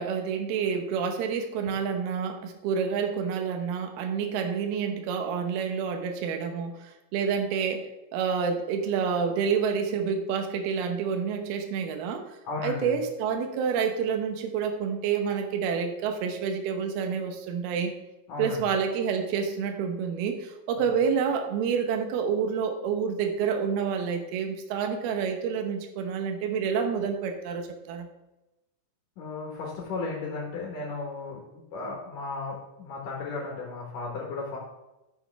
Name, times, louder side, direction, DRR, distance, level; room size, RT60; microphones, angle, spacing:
voice 1, 0.0-6.8 7.1-7.8 8.1-12.2 12.6-17.9 18.4-28.1, right 6 dB, 80° right, 5 dB, 2.3 m, -28 dB
voice 2, 12.4-12.9 18.3-18.6 20.8-20.9 29.2-31.4 31.7-34.6, left 3 dB, 65° left, -3 dB, 2.1 m, -35 dB
13.0 x 6.3 x 3.5 m, 0.97 s
omnidirectional pair, 5.9 m